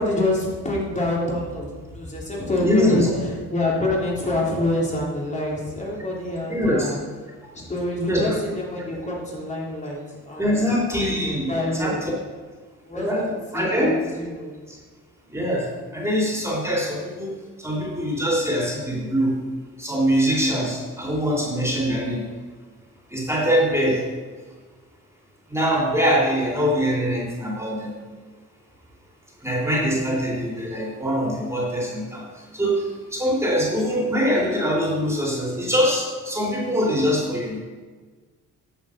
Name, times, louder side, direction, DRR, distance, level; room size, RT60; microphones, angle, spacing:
voice 1, 0.0-7.0 7.5-12.0 12.8-14.5, left 1 dB, 25° left, -3 dB, 3.5 m, -26 dB
voice 2, 2.6-3.0 6.5-6.9 8.1-8.3 10.4-11.5 11.8-11.9 12.9-13.2 13.5-14.0 15.3-19.5 19.8-22.3 23.1-24.0 25.5-27.9 29.4-37.6, equal, 10° right, -4 dB, 3.3 m, -23 dB
10.5 x 7.2 x 5.1 m, 1.5 s
cardioid pair, 90°, 30 cm